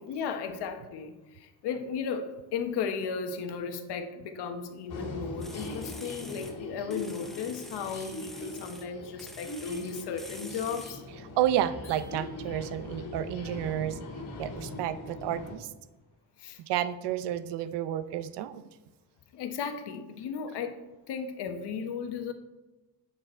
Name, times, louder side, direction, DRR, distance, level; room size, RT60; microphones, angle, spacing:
voice 1, 0.0-11.0 16.4-16.6 19.3-22.3, left 6 dB, 75° left, 7 dB, 1.2 m, -35 dB
sound 1, 4.9-15.5, left 2 dB, 50° left, 2.8 m, -41 dB
sound 2, 5.4-6.6 6.9-8.9 9.2-11.0, equal, ahead, 0.6 m, -47 dB
voice 2, 11.4-14.0 14.4-15.7 16.6-18.6, right 11 dB, 85° right, 14 dB, 0.7 m, -31 dB
sound 3, 11.8-13.0, left 3 dB, 30° left, 3.3 m, -56 dB
9.3 x 8.6 x 4.3 m, 1.1 s
cardioid pair, 170°, 40 cm